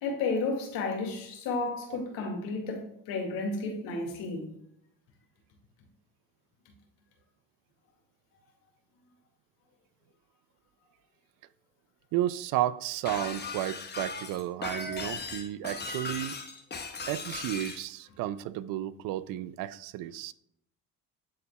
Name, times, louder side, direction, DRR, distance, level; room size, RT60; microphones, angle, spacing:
voice 1, 0.0-4.5, left 3 dB, 85° left, 2.2 m, -32 dB
voice 2, 12.1-16.4 17.1-20.3, right 13 dB, 75° right, 0.5 m, -32 dB
Shatter, 13.1-17.8, left 4 dB, 30° left, 1.1 m, -38 dB
11.5 x 4.1 x 2.2 m
cardioid pair, 90°, 34 cm